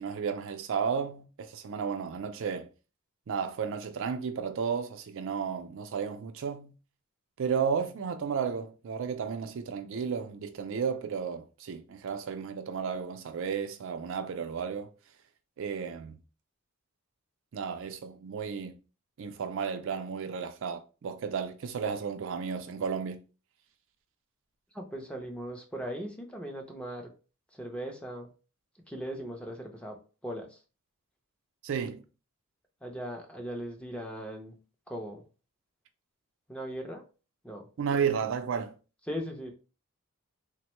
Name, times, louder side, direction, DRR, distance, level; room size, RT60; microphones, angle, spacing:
voice 1, 0.0-2.7 3.3-6.7 7.4-14.9 15.6-16.2 17.5-18.7 19.2-23.2 31.6-32.0 37.8-38.7, right 6 dB, 60° right, 0.4 m, -33 dB
voice 2, 24.7-27.1 27.5-28.3 28.9-30.6 32.8-34.6 34.9-35.2 36.5-37.0 37.4-37.7 39.1-39.5, equal, 5° left, 0.5 m, -39 dB
3.4 x 2.1 x 3.0 m
head